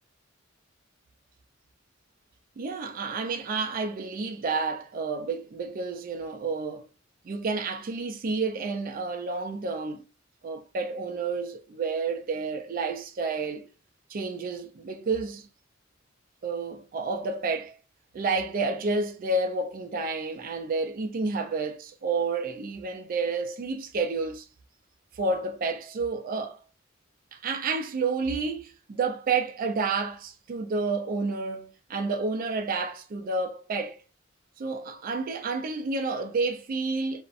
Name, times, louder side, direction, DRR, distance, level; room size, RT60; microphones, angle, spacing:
voice 1, 2.6-6.9 7.2-10.1 10.4-13.7 14.1-15.5 16.4-17.7 18.1-24.5 25.1-26.6 27.3-34.0 34.6-37.2, right 4 dB, 45° right, 0.4 m, -30 dB
2.4 x 2.1 x 2.4 m
head